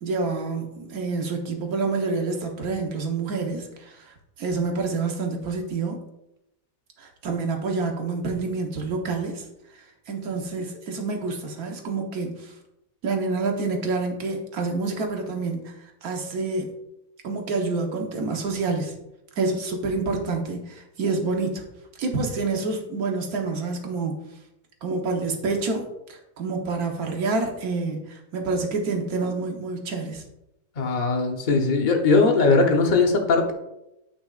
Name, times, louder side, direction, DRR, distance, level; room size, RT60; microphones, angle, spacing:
voice 1, 0.0-6.0 7.0-9.4 10.1-12.5 13.0-15.7 16.0-16.7 17.2-18.9 19.4-21.6 22.0-24.2 24.8-30.2, right 3 dB, 60° right, 2 dB, 1.5 m, -28 dB
voice 2, 30.8-33.5, left 3 dB, 40° left, 3 dB, 0.7 m, -20 dB
8.2 x 6.0 x 2.4 m, 0.88 s
omnidirectional pair, 1.9 m